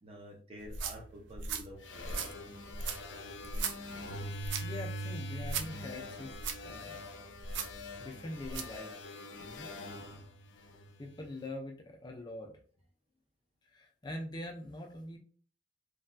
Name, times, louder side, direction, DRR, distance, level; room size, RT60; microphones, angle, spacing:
voice 1, 0.0-2.2, equal, 35° right, 1 dB, 0.7 m, -49 dB
sound 1, 0.6-8.8, right 5 dB, 80° right, 0.4 m, -40 dB
sound 2, 1.8-11.3, left 1 dB, 80° left, 0.5 m, -44 dB
voice 2, 4.6-7.0 8.0-8.9 9.4-9.7 11.0-12.5 13.6-15.2, left 1 dB, 25° left, 1 dB, 0.4 m, -43 dB
3.2 x 2.6 x 2.2 m, 0.43 s
head